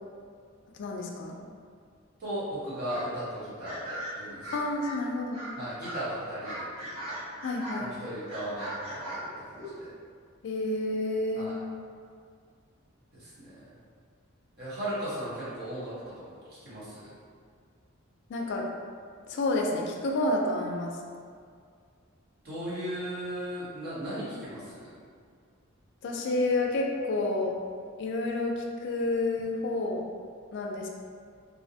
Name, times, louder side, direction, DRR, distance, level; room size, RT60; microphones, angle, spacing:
voice 1, 0.7-1.4 4.5-5.4 7.4-7.9 10.4-11.6 18.3-18.6 19.3-20.9 26.0-27.5 28.0-30.0 30.5-30.9, left 2 dB, 60° left, 0 dB, 0.3 m, -29 dB
voice 2, 2.2-4.4 5.6-7.2 7.8-9.3 9.6-9.9 11.3-11.5 13.1-13.5 14.6-17.1 22.4-24.9, right 1 dB, 50° right, -11 dB, 1.0 m, -37 dB
sound 1, 2.9-3.1 3.6-5.0 5.3-5.5 5.8-6.0 6.4-7.9 8.2-9.8, right 1 dB, 65° right, 1.4 m, -39 dB
2.5 x 2.1 x 2.7 m, 2.1 s
head